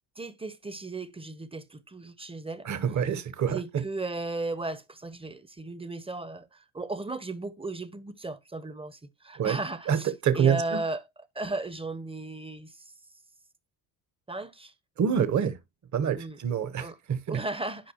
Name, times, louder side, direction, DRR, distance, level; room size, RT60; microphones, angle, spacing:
voice 1, 0.2-2.7 3.5-11.0 11.3-12.9 14.3-14.7 16.2-16.4 16.8-17.0 17.3-17.9, right 2 dB, 10° right, 0.7 m, -36 dB
voice 2, 2.6-3.8 9.4-9.6 9.9-10.8 15.0-15.6 15.9-17.4, right 8 dB, 40° right, 1.0 m, -27 dB
11.5 x 5.0 x 2.8 m
supercardioid pair, 75°, 45 cm